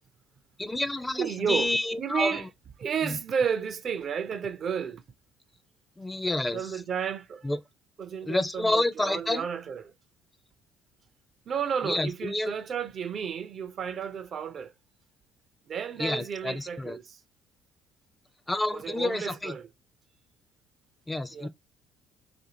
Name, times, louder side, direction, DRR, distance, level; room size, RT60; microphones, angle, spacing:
voice 1, 0.6-2.4 3.0-3.2 6.0-6.6 7.4-7.6 8.2-9.5 11.8-12.5 16.0-17.0 18.5-19.6 21.1-21.5, left 2 dB, 15° left, 0.4 m, -29 dB
voice 2, 1.2-2.5 2.8-5.0 6.5-7.5 8.0-9.9 11.5-14.7 15.7-17.2 18.7-19.7 21.3-21.5, right 7 dB, 50° right, 0.4 m, -32 dB
2.7 x 2.6 x 2.7 m
hypercardioid pair, 60°, 0 cm